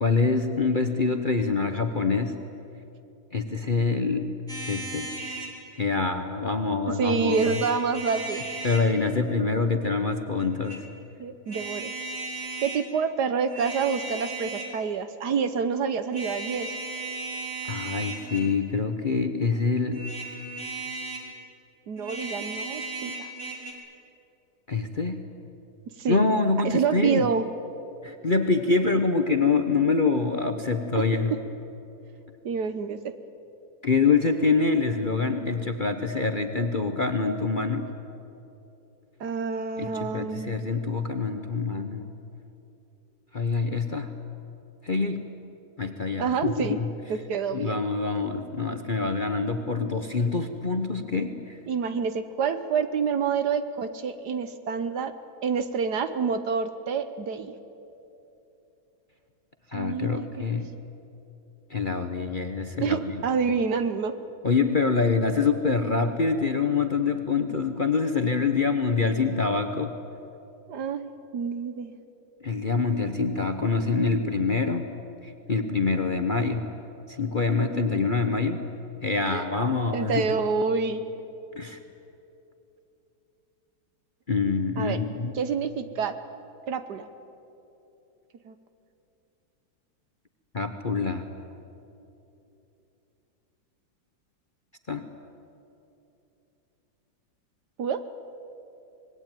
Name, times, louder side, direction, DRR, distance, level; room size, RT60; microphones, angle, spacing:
voice 1, 0.0-2.4 3.3-4.3 4.7-5.1 5.8-7.5 8.6-10.8 17.7-20.1 24.7-25.2 26.1-27.3 28.0-31.3 33.8-37.9 39.8-42.0 43.3-44.1 44.8-45.2 45.8-46.9 47.5-51.6 59.7-60.7 61.7-63.1 64.4-70.0 72.4-74.9 75.2-76.7 77.2-78.6 79.0-80.2 81.5-81.8 84.3-85.3 90.5-91.3 94.9-95.0, left 4 dB, 35° left, 6 dB, 0.9 m, -25 dB
sound 1, 4.5-5.5 7.2-8.9 10.4-10.8 11.5-12.8 13.4-14.8 16.1-18.6 19.9-21.3 22.0-23.7, right 3 dB, 40° right, 4.0 m, -36 dB
voice 2, 7.0-8.4 11.2-11.9 12.6-16.7 21.9-23.3 26.0-26.3 26.6-27.4 32.4-33.0 39.2-40.6 46.2-46.8 47.1-47.8 51.7-55.1 55.4-57.5 59.7-60.5 62.8-64.1 70.7-71.9 79.3-79.5 79.9-81.0 84.8-85.0 85.3-86.1 86.7-87.1 88.4-88.5 97.8-98.0, right 6 dB, 60° right, 10 dB, 1.5 m, -27 dB
25.5 x 20.5 x 9.1 m, 2.9 s
omnidirectional pair, 2.1 m